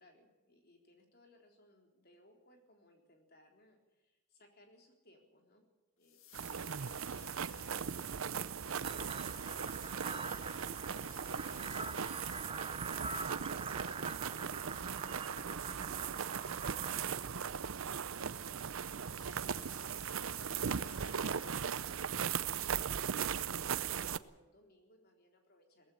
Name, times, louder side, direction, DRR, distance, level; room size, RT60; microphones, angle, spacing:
voice 1, 0.0-5.6 6.0-12.7 13.4-25.9, left 1 dB, 45° left, 3 dB, 3.9 m, -65 dB
sound 1, 6.0-13.0 14.9-22.2, left 11 dB, 70° left, 1.9 m, -59 dB
sound 2, 6.3-24.2, right 7 dB, 70° right, 0.6 m, -38 dB
sound 3, 8.8-17.0, right 4 dB, 25° right, 0.8 m, -44 dB
18.0 x 15.0 x 9.9 m, 1.1 s
head